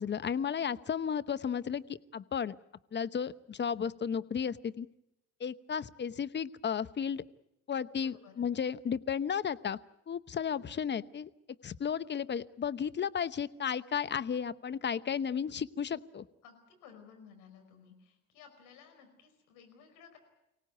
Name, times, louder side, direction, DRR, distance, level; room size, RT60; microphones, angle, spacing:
voice 1, 0.0-2.6 2.9-4.9 5.4-7.2 7.7-9.8 10.1-11.3 11.6-16.2, left 7 dB, 35° left, 15 dB, 1.0 m, -34 dB
voice 2, 8.0-8.4 16.4-20.2, left 7 dB, 75° left, 6 dB, 5.0 m, -56 dB
24.5 x 18.0 x 9.3 m, 0.86 s
hypercardioid pair, 65°, 30 cm